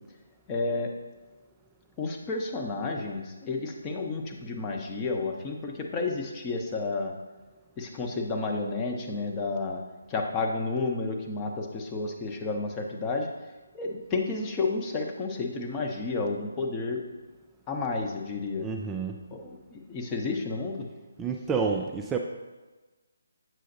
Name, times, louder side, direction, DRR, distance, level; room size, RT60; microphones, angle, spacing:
voice 1, 0.5-0.9 2.0-7.1 7.8-9.8 10.1-13.3 13.7-17.0 17.7-18.6 19.3-20.9, left 3 dB, 20° left, 2 dB, 0.7 m, -31 dB
voice 2, 18.6-19.2 21.2-22.2, right 5 dB, 10° right, 2 dB, 0.3 m, -29 dB
7.6 x 5.6 x 2.6 m, 1.2 s
figure-of-eight pair, 155°, 0 cm